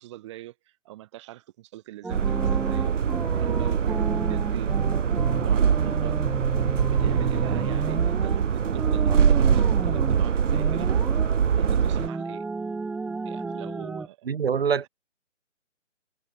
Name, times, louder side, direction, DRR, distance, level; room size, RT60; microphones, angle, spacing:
voice 1, 0.0-2.9 3.3-4.7 5.4-6.2 6.9-10.9 11.5-12.4 13.2-14.3, right 16 dB, 25° right, 6.8 m, -42 dB
sound 1, 2.0-8.4 8.8-10.3 10.5-11.4 12.0-14.1, right 3 dB, 5° right, 3.0 m, -33 dB
sound 2, 2.1-12.1, right 7 dB, 70° right, 1.1 m, -23 dB
voice 2, 14.3-14.9, right 6 dB, 50° right, 1.1 m, -24 dB
hypercardioid pair, 170°, 38 cm